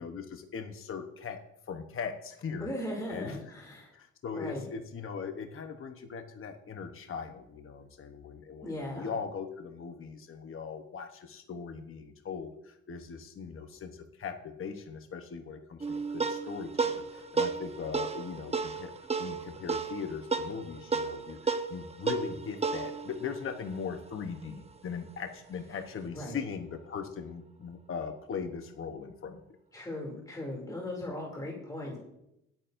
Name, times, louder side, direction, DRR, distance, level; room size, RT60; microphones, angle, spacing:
voice 1, 0.0-1.4 1.7-2.7 3.1-3.4 3.9-29.4, left 6 dB, 45° left, 5 dB, 1.0 m, -40 dB
voice 2, 2.6-3.9 4.3-4.7 8.6-9.1 25.7-25.8 26.1-26.4 29.7-32.0, left 1 dB, 10° left, -1 dB, 2.8 m, -38 dB
sound 1, 15.8-24.6, right 4 dB, 20° right, 0.9 m, -34 dB
20.5 x 9.0 x 2.6 m, 0.80 s
cardioid pair, 90°, 30 cm